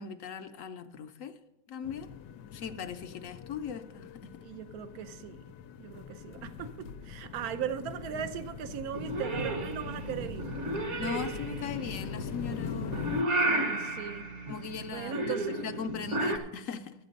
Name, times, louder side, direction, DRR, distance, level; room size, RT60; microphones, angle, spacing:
voice 1, 0.0-1.3 1.7-2.1 2.5-4.2 8.1-8.3 11.0-13.1 13.4-13.6 14.5-16.9, left 7 dB, 60° left, 0.9 m, -39 dB
sound 1, 1.8-13.2, left 7 dB, 85° left, 1.2 m, -42 dB
voice 2, 4.4-5.4 5.8-10.5 13.4-14.3 14.9-15.6, right 9 dB, 65° right, 1.1 m, -38 dB
Purr / Meow, 8.9-16.4, right 1 dB, 50° right, 1.2 m, -33 dB
12.0 x 8.3 x 5.2 m
omnidirectional pair, 1.8 m